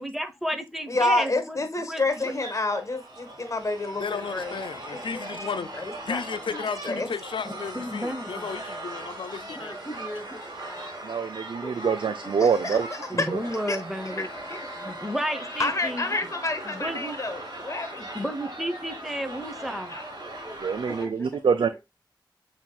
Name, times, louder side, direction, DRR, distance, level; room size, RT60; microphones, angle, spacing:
voice 1, 0.0-1.6 1.9-2.3 6.9-7.1 7.4-8.5 13.1-14.3 14.8-16.2 16.7-17.2 18.1-19.9, equal, ahead, 0.9 m, -32 dB
voice 2, 0.9-4.6 4.9-5.7 6.1-6.2 6.5-6.6 6.8-7.1 12.4-13.3 13.7-13.8 14.2-14.3 15.4-18.0 19.9-20.0, left 2 dB, 40° left, 1.2 m, -29 dB
sound 1, 2.1-21.0, right 1 dB, 55° right, 1.8 m, -39 dB
voice 3, 4.0-5.7 6.1-9.7, left 6 dB, 80° left, 0.5 m, -34 dB
voice 4, 9.3-10.9 11.6-11.9 12.2-12.3 14.9-15.0 18.0-18.1 18.9-19.0 20.9-21.5, equal, 20° left, 1.4 m, -41 dB
voice 5, 11.0-12.9 13.3-13.4 20.6-21.8, right 6 dB, 75° right, 0.4 m, -25 dB
7.2 x 2.9 x 2.3 m
wide cardioid pair, 60°, 8 cm